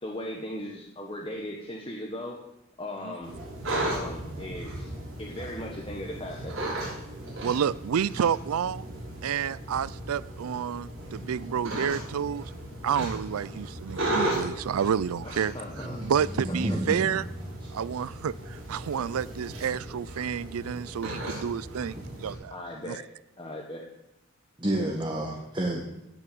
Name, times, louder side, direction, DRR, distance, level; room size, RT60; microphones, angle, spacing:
voice 1, 0.0-2.5 2.8-3.3 3.7-4.9 5.2-6.9 15.2-16.0 16.5-16.8 22.5-23.0 23.4-23.9, left 1 dB, 25° left, -1 dB, 1.4 m, -38 dB
sound 1, 3.2-22.3, right 1 dB, 65° right, 6.0 m, -36 dB
voice 2, 7.4-8.9 9.2-12.5 12.8-17.3 17.7-22.5 22.9-23.0, right 8 dB, 90° right, 20 dB, 0.4 m, -30 dB
voice 3, 15.8-16.1 16.4-17.2 24.6-25.8, right 1 dB, 20° right, -1 dB, 1.5 m, -30 dB
17.5 x 6.8 x 6.8 m, 0.86 s
head